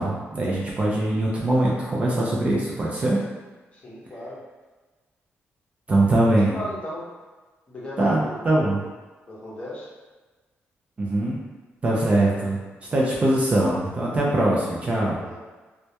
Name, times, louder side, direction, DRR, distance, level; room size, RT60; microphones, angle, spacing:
voice 1, 0.0-3.2 5.9-6.6 8.0-8.8 11.0-11.4 11.8-12.6 12.9-15.2, right 1 dB, 30° right, -4 dB, 0.4 m, -22 dB
voice 2, 3.7-4.4 6.5-7.1 7.7-8.8 9.3-9.9 15.3-15.4, equal, 25° left, -6 dB, 0.6 m, -36 dB
2.2 x 2.1 x 2.7 m, 1.3 s
wide cardioid pair, 170°, 4 cm